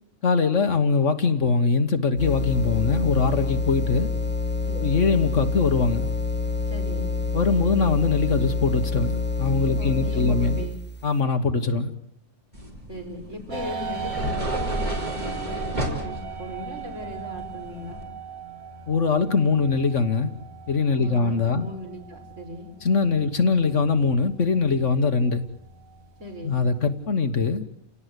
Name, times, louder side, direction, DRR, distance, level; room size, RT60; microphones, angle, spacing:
voice 1, 0.2-4.1 4.8-6.1 7.3-10.6 11.0-11.9 18.9-20.3 20.7-21.7 22.8-25.4 26.4-27.6, left 4 dB, 60° left, 8 dB, 1.7 m, -22 dB
sound 1, 2.2-10.9, left 3 dB, 10° left, 0.7 m, -27 dB
voice 2, 6.7-7.1 9.8-10.8 12.9-18.0 20.9-22.7 26.2-26.6, left 1 dB, 60° right, 2 dB, 5.4 m, -38 dB
sound 2, 12.5-18.0, equal, 30° right, 4.1 m, -33 dB
sound 3, 13.5-27.1, right 6 dB, 80° right, 3.6 m, -38 dB
30.0 x 17.5 x 8.2 m, 0.75 s
omnidirectional pair, 1.5 m